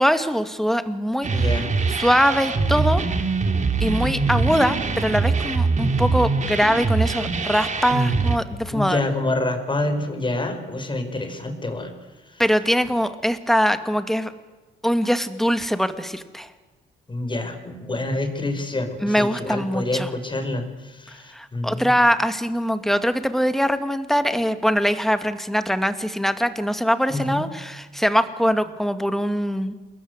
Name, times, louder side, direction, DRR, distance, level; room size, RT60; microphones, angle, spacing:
voice 1, 0.0-1.5 1.9-3.0 3.8-9.0 12.4-14.3 14.8-16.5 19.0-20.1 21.3-29.7, equal, ahead, 9 dB, 2.4 m, -22 dB
sound 1, 1.2-8.4, right 4 dB, 40° right, 3.0 m, -23 dB
voice 2, 1.3-1.7 8.7-11.9 12.3-12.4 17.1-21.9 27.1-27.4, left 2 dB, 25° left, 6 dB, 5.6 m, -27 dB
28.5 x 21.0 x 8.2 m, 1.3 s
cardioid pair, 90°, 20 cm